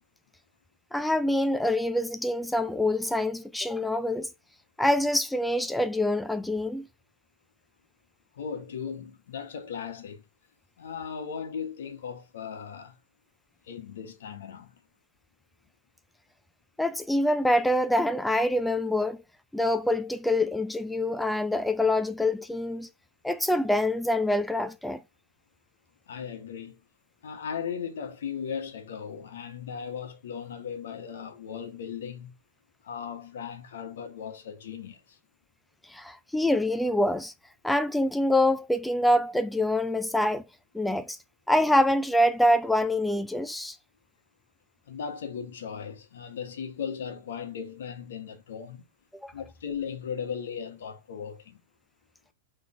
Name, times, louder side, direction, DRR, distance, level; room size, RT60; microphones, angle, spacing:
voice 1, 0.9-4.3 4.8-6.9 16.8-19.2 19.5-22.9 23.2-25.0 35.9-37.3 37.6-40.4 40.7-41.2 41.5-43.8 49.2-49.3, left 1 dB, 5° left, 0.3 m, -25 dB
voice 2, 8.3-10.2 10.8-13.0 13.6-14.8 26.1-26.8 27.2-32.3 32.8-35.2 44.9-48.8 49.3-51.6, left 7 dB, 80° left, 1.3 m, -37 dB
3.9 x 3.3 x 3.6 m
hypercardioid pair, 130°, 0 cm